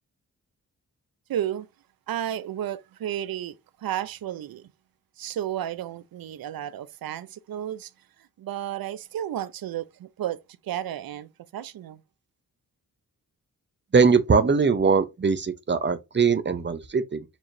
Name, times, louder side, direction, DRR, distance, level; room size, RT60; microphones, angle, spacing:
voice 1, 1.3-1.7 2.1-4.7 5.2-7.9 8.4-12.0, right 11 dB, 70° right, 0.5 m, -32 dB
voice 2, 13.9-17.2, right 5 dB, 30° right, 0.7 m, -21 dB
4.5 x 2.9 x 2.6 m
cardioid pair, 50°, 37 cm